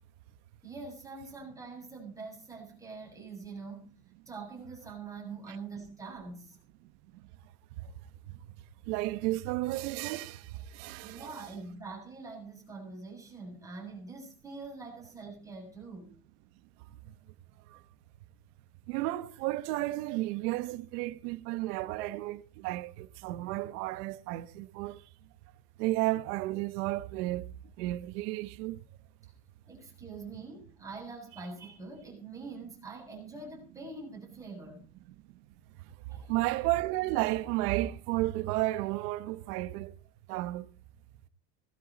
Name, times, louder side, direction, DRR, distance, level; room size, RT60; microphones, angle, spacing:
voice 1, 0.6-3.9 4.3-6.6 11.0-16.1 29.7-34.9 36.1-36.3, right 4 dB, 5° right, 7.2 m, -44 dB
voice 2, 8.9-11.3 17.0-17.1 17.7-17.8 18.9-25.0 25.8-27.5 27.8-28.8 35.9-39.9 40.3-40.7, right 17 dB, 65° right, 1.3 m, -33 dB
19.0 x 13.5 x 4.2 m
cardioid pair, 170°, 50 cm